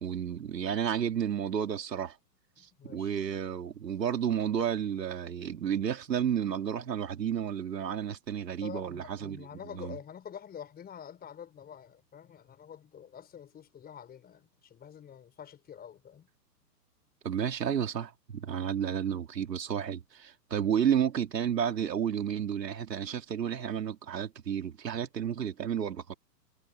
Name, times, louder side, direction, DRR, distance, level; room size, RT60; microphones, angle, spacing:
voice 1, 0.0-2.2 2.6-10.0 17.2-26.1, right 8 dB, 80° right, 3.6 m, -31 dB
voice 2, 2.6-3.2 8.6-16.3, left 8 dB, 20° left, 5.2 m, -47 dB
hypercardioid pair, 125°, 49 cm